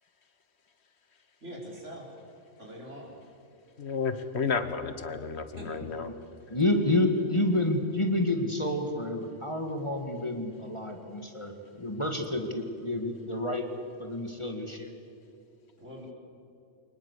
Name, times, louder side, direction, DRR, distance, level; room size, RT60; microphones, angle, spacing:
voice 1, 1.4-2.1 2.6-3.1 5.5-5.7 15.8-16.1, equal, 75° right, -2 dB, 5.1 m, -43 dB
voice 2, 3.8-6.1, left 5 dB, 60° left, 11 dB, 1.5 m, -32 dB
voice 3, 6.5-13.7 14.0-14.9, left 1 dB, 25° left, 4 dB, 1.7 m, -29 dB
23.5 x 20.5 x 8.2 m, 2.7 s
omnidirectional pair, 1.3 m